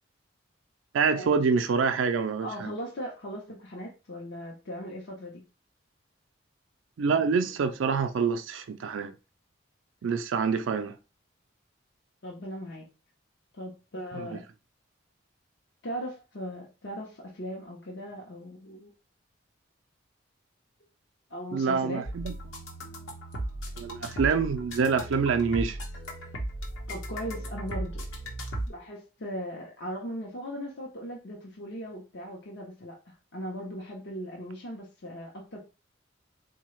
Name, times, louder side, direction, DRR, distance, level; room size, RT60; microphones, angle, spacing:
voice 1, 0.9-2.7 7.0-9.1 10.0-10.9 14.2-14.3 21.5-22.3 23.8-25.8, right 5 dB, 80° right, 0.4 m, -26 dB
voice 2, 2.4-5.4 12.2-12.9 13.5-14.4 15.8-18.9 21.3-22.0 26.9-28.0 28.7-35.6, equal, 60° left, 0.7 m, -38 dB
sound 1, 22.1-28.7, right 1 dB, 85° left, 1.0 m, -36 dB
3.7 x 2.3 x 3.1 m
head